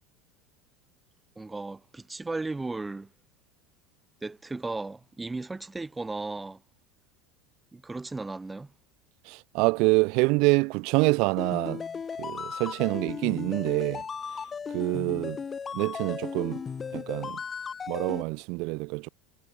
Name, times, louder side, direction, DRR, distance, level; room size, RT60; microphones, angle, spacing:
voice 1, 1.4-3.1 4.2-6.6 7.7-8.7, right 3 dB, 15° right, 0.8 m, -35 dB
voice 2, 9.2-11.8 12.2-14.0 14.7-15.4 15.7-16.6 16.9-17.4 17.9-19.1, right 28 dB, 60° right, 0.3 m, -26 dB
sound 1, 11.4-18.2, left 6 dB, 25° left, 1.6 m, -36 dB
hypercardioid pair, 90°, 0 cm